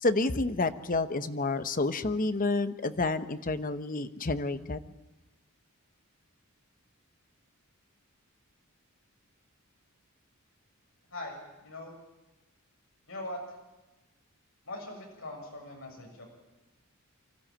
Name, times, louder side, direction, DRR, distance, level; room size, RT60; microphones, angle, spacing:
voice 1, 0.0-4.8, left 3 dB, 40° left, 11 dB, 1.0 m, -29 dB
voice 2, 11.1-11.9 13.1-13.4 14.7-16.3, left 1 dB, 65° left, 0 dB, 6.9 m, -41 dB
24.5 x 14.5 x 8.8 m, 1.1 s
head